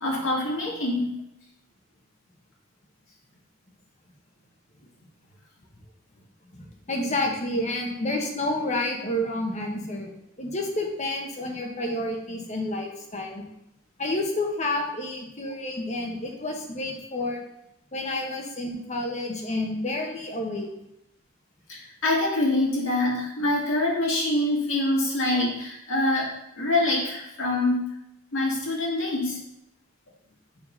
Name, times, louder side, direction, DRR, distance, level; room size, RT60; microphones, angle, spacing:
voice 1, 0.0-1.1 21.7-27.8 28.3-29.4, left 2 dB, 70° left, -3 dB, 2.1 m, -25 dB
voice 2, 6.5-10.1 10.4-13.4 14.0-17.4 17.9-20.7, left 1 dB, 35° left, 2 dB, 1.1 m, -29 dB
7.2 x 3.8 x 5.3 m, 0.80 s
head